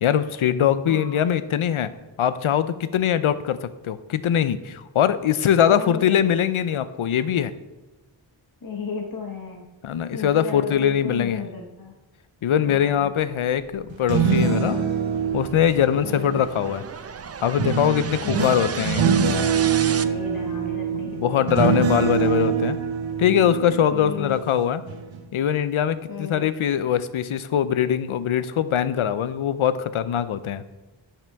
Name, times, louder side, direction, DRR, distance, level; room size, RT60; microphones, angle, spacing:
voice 1, 0.0-1.9 2.2-7.5 9.8-11.4 12.4-14.8 15.3-16.8 17.4-19.1 20.9-22.8 23.2-24.8 25.3-30.6, left 9 dB, 80° left, 14 dB, 0.6 m, -22 dB
voice 2, 0.9-1.3 5.7-6.4 8.6-9.7 10.1-11.9 12.6-13.1 16.0-16.4 18.2-18.6 19.9-21.5 23.9-24.4 26.1-26.5, left 4 dB, 45° left, 0 dB, 1.0 m, -34 dB
sound 1, 13.1-20.0, right 6 dB, 35° right, 0.4 m, -35 dB
sound 2, 13.9-16.8 17.6-24.5 24.9-25.2, right 6 dB, 65° right, 0.9 m, -24 dB
10.5 x 5.8 x 3.5 m, 1.1 s
wide cardioid pair, 60°, 48 cm